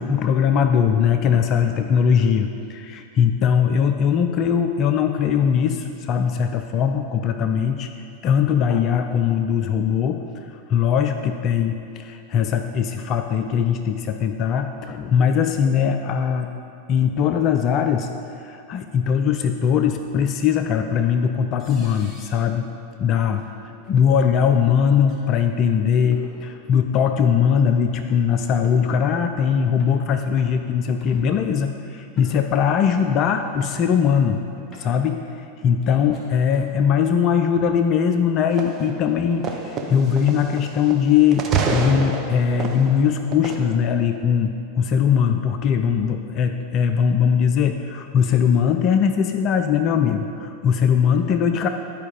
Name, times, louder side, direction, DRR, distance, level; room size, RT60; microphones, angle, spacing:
voice 1, 0.0-7.9 8.2-10.2 10.5-16.5 16.9-18.1 18.4-22.7 23.0-34.4 34.8-51.7, left 7 dB, 35° left, 7 dB, 0.4 m, -20 dB
sound 1, 20.4-20.5 21.6-22.4 23.3-23.5 23.8-24.0 25.0-25.2 25.9-26.4 27.6-27.7 28.4-28.8 29.4-30.0 30.4-30.6 31.0-31.5 32.2-32.7 33.0-33.1 33.4-34.1 34.5-35.0 35.8-36.9 37.5-37.8 38.4-39.7, left 1 dB, 15° left, 1.6 m, -48 dB
sound 2, 38.6-38.9 39.4-41.1 41.3-43.6, right 5 dB, 30° right, 0.8 m, -27 dB
10.5 x 4.9 x 5.2 m, 2.5 s
figure-of-eight pair, 90°, 0 cm